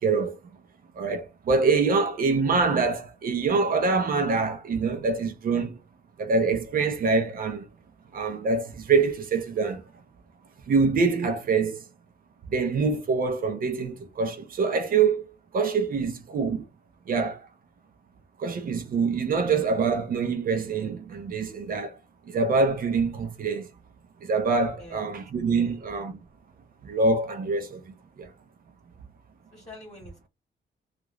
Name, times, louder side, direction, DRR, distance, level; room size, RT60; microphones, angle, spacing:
voice 1, 0.0-0.4 0.9-5.8 6.2-7.7 8.1-9.8 10.7-11.9 12.5-16.7 17.1-17.4 18.4-22.0 22.3-23.7 24.2-26.2 26.8-28.3, right 4 dB, 50° right, 0.7 m, -25 dB
voice 2, 24.8-25.1 25.5-25.8 29.5-30.3, left 2 dB, 25° left, 1.2 m, -47 dB
3.0 x 2.5 x 3.0 m
wide cardioid pair, 180°, 18 cm